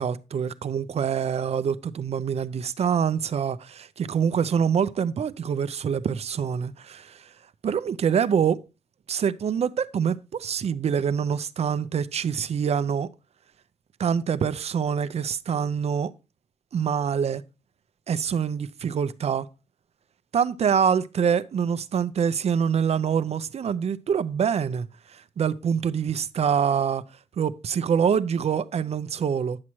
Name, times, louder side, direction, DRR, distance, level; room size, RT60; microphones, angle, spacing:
voice 1, 0.0-7.2 7.6-8.6 9.1-13.1 14.0-16.1 16.7-17.4 18.1-19.5 20.3-24.9 25.4-27.0 27.4-29.6, right 7 dB, 55° right, 0.6 m, -25 dB
9.6 x 7.4 x 3.0 m
wide cardioid pair, 150°, 12 cm